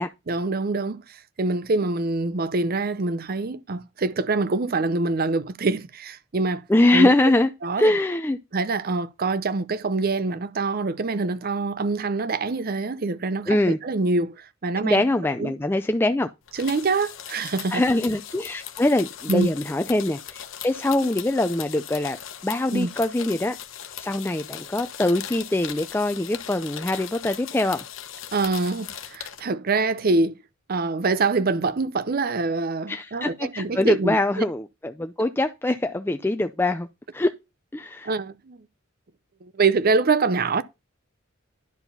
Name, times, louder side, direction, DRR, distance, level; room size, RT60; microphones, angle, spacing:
voice 1, 0.3-6.6 6.9-7.1 7.6-7.9 8.5-15.0 15.4-15.5 16.6-17.8 19.3-19.5 22.7-22.9 28.3-30.4 30.7-34.2 38.0-38.6 39.4-40.6, right 3 dB, 45° right, 0.6 m, -25 dB
voice 2, 6.7-7.5 7.8-8.4 13.5-13.8 14.8-16.3 17.7-22.2 22.4-23.6 24.0-27.8 32.9-36.9 37.1-37.3 37.7-38.1, left 1 dB, 10° left, 0.4 m, -23 dB
sound 1, 16.5-29.4, left 10 dB, 70° left, 1.0 m, -39 dB
10.5 x 4.8 x 5.5 m
head